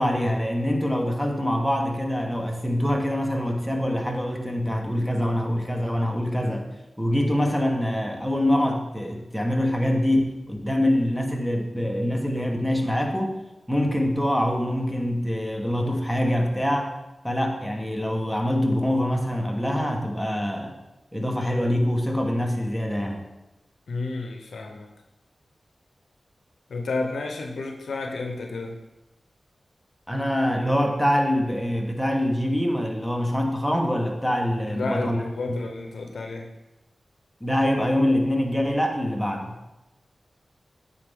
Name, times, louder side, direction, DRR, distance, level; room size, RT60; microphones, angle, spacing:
voice 1, 0.0-6.7 7.0-13.4 13.7-16.9 17.2-20.7 21.1-23.3 30.1-35.2 35.5-35.6 37.4-39.6, equal, ahead, 2 dB, 1.2 m, -24 dB
voice 2, 23.9-24.9 26.7-28.8 34.6-36.5, left 3 dB, 85° left, 3 dB, 0.8 m, -31 dB
8.9 x 4.2 x 3.6 m, 0.98 s
cardioid pair, 45°, 0 cm